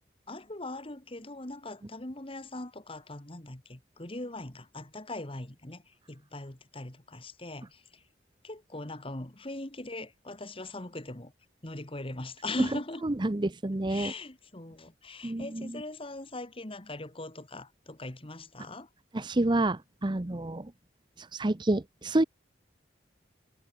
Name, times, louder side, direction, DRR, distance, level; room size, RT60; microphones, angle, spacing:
voice 1, 0.3-8.0 8.4-11.3 11.6-13.1 13.9-18.9, left 2 dB, 30° left, 2.0 m, -40 dB
voice 2, 13.0-14.1 15.2-15.8 19.1-20.7 21.2-22.2, right 1 dB, 25° right, 0.7 m, -29 dB
head